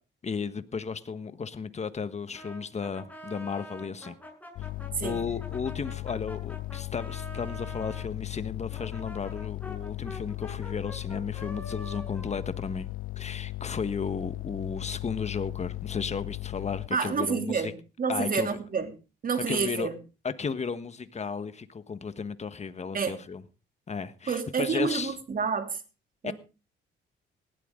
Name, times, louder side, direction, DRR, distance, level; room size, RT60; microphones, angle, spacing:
voice 1, 0.2-4.1 5.0-12.9 13.2-17.7 18.1-18.6 19.5-19.9 20.2-23.4 23.9-25.1 26.2-26.3, left 5 dB, 35° left, 1.4 m, -34 dB
Brass instrument, 2.3-8.1 8.7-13.5, equal, 10° left, 7.6 m, -46 dB
sound 1, 4.6-16.9, left 17 dB, 80° left, 0.8 m, -37 dB
voice 2, 16.9-18.9 19.2-20.0 22.9-23.2 24.3-25.8 26.2-26.3, right 5 dB, 45° right, 2.9 m, -29 dB
18.0 x 13.0 x 3.8 m
cardioid pair, 90°, 20 cm